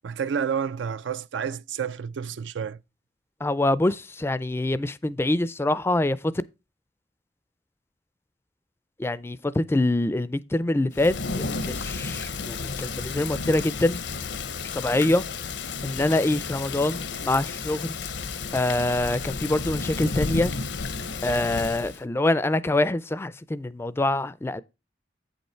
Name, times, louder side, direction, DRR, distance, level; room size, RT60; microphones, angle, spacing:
voice 1, 0.0-2.8, right 7 dB, 80° right, 0.4 m, -30 dB
voice 2, 3.4-6.3 9.0-14.0 14.7-15.2 15.8-17.9 18.5-20.5 21.2-24.6, left 2 dB, 15° left, 0.3 m, -25 dB
Thunder / Rain, 10.9-22.0, left 4 dB, 75° left, 0.7 m, -32 dB
8.6 x 5.4 x 4.4 m
head